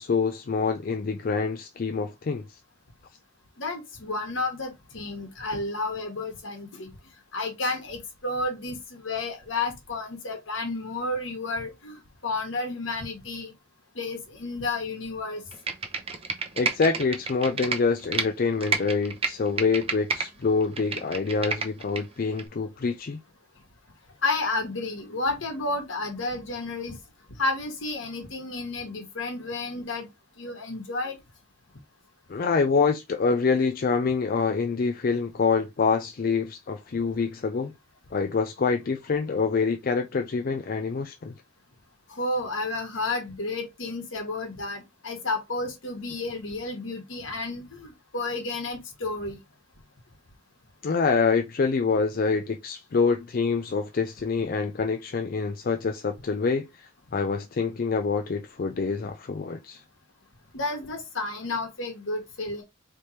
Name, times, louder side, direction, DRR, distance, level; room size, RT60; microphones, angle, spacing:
voice 1, 0.0-2.6 16.6-23.2 32.3-37.7 38.1-41.4 50.8-59.8, left 4 dB, 45° left, 0.4 m, -26 dB
voice 2, 3.6-6.9 7.3-13.5 13.9-15.4 24.2-27.0 27.4-30.1 30.4-31.2 42.1-49.4 60.5-62.6, left 3 dB, 70° left, 1.5 m, -31 dB
Computer keyboard, 15.5-18.3 18.6-20.3 20.6-22.0 22.4-22.5, right 4 dB, 30° right, 0.7 m, -29 dB
4.3 x 3.4 x 3.1 m
head